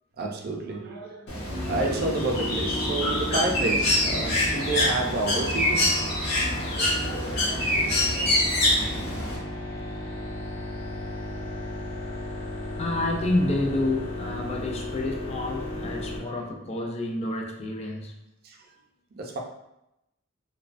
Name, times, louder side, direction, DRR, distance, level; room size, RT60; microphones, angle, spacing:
voice 1, 0.2-6.1 6.4-8.7 16.2-16.3 18.4-18.6 19.2-19.4, right 2 dB, 50° right, 1 dB, 0.4 m, -31 dB
Bird, 1.3-9.4, left 1 dB, 55° left, 0.7 m, -25 dB
sound 1, 1.5-16.2, left 1 dB, 80° left, 1.0 m, -35 dB
voice 2, 12.8-18.2, left 2 dB, 30° left, 1 dB, 0.4 m, -29 dB
2.5 x 2.2 x 2.4 m, 0.88 s
head